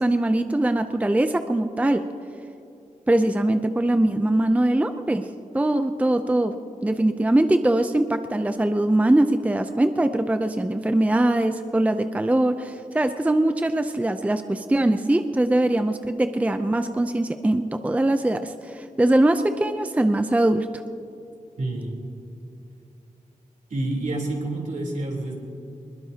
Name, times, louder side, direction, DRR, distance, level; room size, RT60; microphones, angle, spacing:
voice 1, 0.0-2.0 3.1-5.3 5.5-6.5 6.8-20.7, right 1 dB, 10° right, 8 dB, 0.5 m, -22 dB
voice 2, 21.6-22.0 23.7-25.4, right 2 dB, 65° right, -1 dB, 3.4 m, -28 dB
21.5 x 21.5 x 2.8 m, 2.7 s
wide cardioid pair, 120°, 14 cm